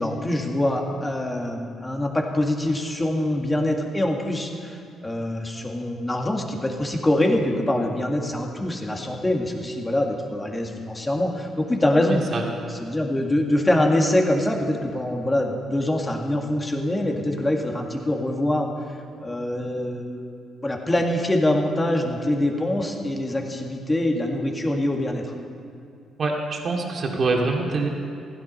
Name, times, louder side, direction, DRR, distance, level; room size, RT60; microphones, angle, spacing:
voice 1, 0.0-12.2 12.8-18.7 19.2-20.3 20.6-25.3, left 1 dB, 20° left, 1 dB, 2.0 m, -24 dB
voice 2, 12.1-12.4 26.2-27.9, right 3 dB, 50° right, 0 dB, 2.3 m, -25 dB
16.0 x 12.0 x 5.5 m, 2.5 s
cardioid pair, 90°, 0 cm